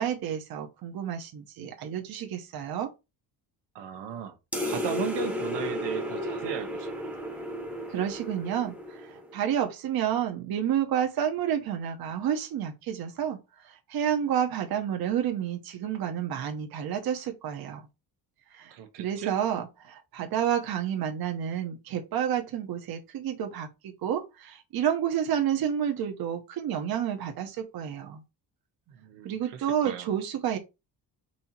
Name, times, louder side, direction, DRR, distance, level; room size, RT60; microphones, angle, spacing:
voice 1, 0.0-2.9 7.9-13.4 13.9-17.8 18.5-18.7 19.0-28.2 29.2-30.6, right 9 dB, 60° right, 0.9 m, -30 dB
voice 2, 3.7-4.4 4.6-7.1 18.7-19.3 28.9-30.2, right 8 dB, 85° right, 1.0 m, -36 dB
sound 1, 4.5-9.4, equal, 5° right, 0.9 m, -33 dB
4.3 x 2.8 x 4.2 m
cardioid pair, 150°, 41 cm